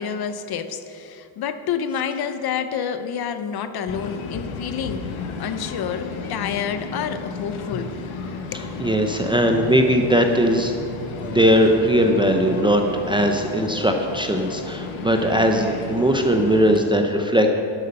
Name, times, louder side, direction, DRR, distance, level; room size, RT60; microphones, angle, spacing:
voice 1, 0.0-8.0 8.3-8.7, left 7 dB, 50° left, 10 dB, 0.7 m, -29 dB
sound 1, 3.9-16.8, left 4 dB, 75° left, 1.2 m, -33 dB
voice 2, 8.8-10.7 11.2-17.5, equal, 10° right, 3 dB, 0.5 m, -19 dB
12.0 x 8.1 x 5.4 m, 2.8 s
cardioid pair, 165°, 49 cm